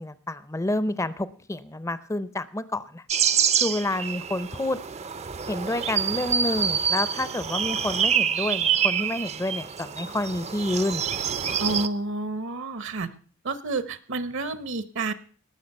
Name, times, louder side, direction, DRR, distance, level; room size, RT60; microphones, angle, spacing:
voice 1, 0.0-3.0 3.6-4.8 5.5-11.0, left 1 dB, 15° left, 15 dB, 0.6 m, -29 dB
sound 1, 3.1-11.9, right 7 dB, 30° right, 0.5 m, -26 dB
voice 2, 11.6-13.1 13.4-15.1, right 2 dB, 60° right, 14 dB, 0.8 m, -29 dB
19.0 x 6.6 x 5.4 m, 0.43 s
head